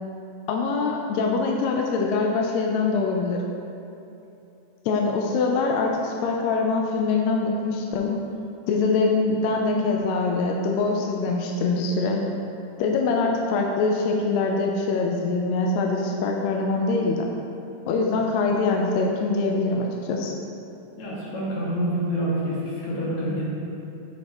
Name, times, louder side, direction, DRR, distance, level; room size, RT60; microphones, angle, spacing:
voice 1, 0.5-3.4 4.8-8.1 8.7-12.2 12.8-17.3 17.9-20.3, left 3 dB, 80° left, 0 dB, 1.6 m, -23 dB
voice 2, 21.0-23.4, equal, 65° left, -7 dB, 2.9 m, -27 dB
7.7 x 7.3 x 3.0 m, 2.9 s
omnidirectional pair, 3.6 m